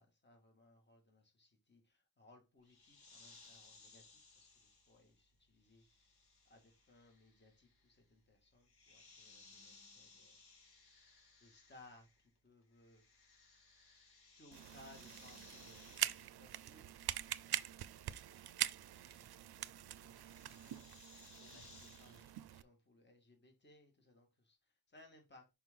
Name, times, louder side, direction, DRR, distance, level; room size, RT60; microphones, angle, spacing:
voice 1, 0.0-5.8 6.5-10.4 11.4-13.0 14.4-25.5, left 2 dB, 30° left, 1.9 m, -65 dB
sound 1, 2.6-12.4 12.6-22.3, left 4 dB, 85° left, 2.4 m, -64 dB
sound 2, 14.5-22.6, right 12 dB, 80° right, 0.5 m, -44 dB
6.0 x 5.0 x 3.6 m
wide cardioid pair, 115°, 37 cm